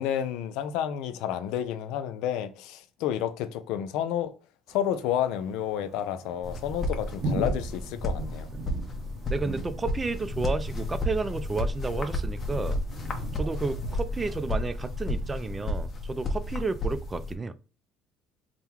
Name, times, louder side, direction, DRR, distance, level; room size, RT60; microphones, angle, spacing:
voice 1, 0.0-4.3 4.7-8.5, left 10 dB, 80° left, 0.5 m, -30 dB
Thunder, 4.7-15.6, right 2 dB, 55° right, 0.7 m, -40 dB
sound 1, 6.4-17.3, left 1 dB, 35° left, 0.9 m, -32 dB
voice 2, 9.3-12.8 13.3-17.5, right 3 dB, 20° right, 0.4 m, -32 dB
3.7 x 2.2 x 4.4 m
cardioid pair, 115°, 0 cm